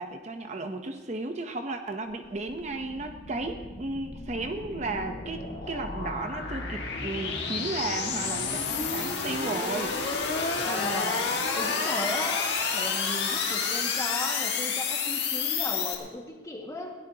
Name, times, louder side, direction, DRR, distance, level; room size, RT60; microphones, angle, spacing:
voice 1, 0.0-10.0, right 2 dB, 40° right, 6 dB, 0.8 m, -34 dB
sound 1, 2.1-15.9, left 5 dB, 70° left, 1.8 m, -30 dB
voice 2, 10.6-16.9, left 1 dB, 20° left, 0 dB, 1.7 m, -36 dB
21.5 x 16.5 x 2.8 m, 1.3 s
head